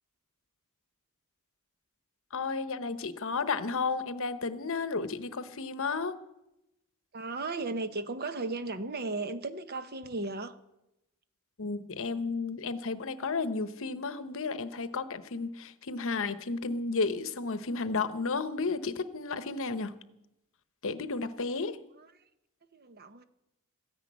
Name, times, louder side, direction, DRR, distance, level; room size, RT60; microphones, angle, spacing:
voice 1, 2.3-6.1 11.6-19.9 20.8-21.8, left 4 dB, 65° left, 11 dB, 0.9 m, -32 dB
voice 2, 7.1-10.5 22.0-22.1 22.7-23.2, right 3 dB, 45° right, 10 dB, 0.9 m, -35 dB
14.5 x 10.5 x 8.7 m, 0.89 s
head